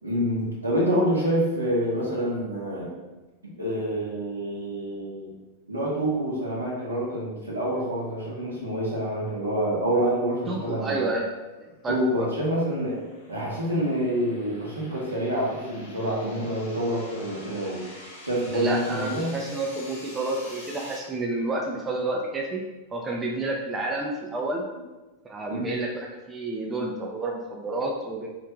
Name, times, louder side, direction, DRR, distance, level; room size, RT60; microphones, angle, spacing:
voice 1, 0.0-2.9 3.4-5.3 5.7-11.1 11.9-13.0 13.3-17.8 18.2-19.3 25.5-25.8, equal, 80° right, -5 dB, 1.3 m, -27 dB
voice 2, 10.5-11.3 11.8-12.3 18.5-22.6 22.9-24.7 25.2-28.3, right 2 dB, 20° right, -1 dB, 0.5 m, -30 dB
sound 1, 12.0-21.0, left 1 dB, 55° left, 1.1 m, -46 dB
3.2 x 3.1 x 3.6 m, 1.2 s
figure-of-eight pair, 90°, 0 cm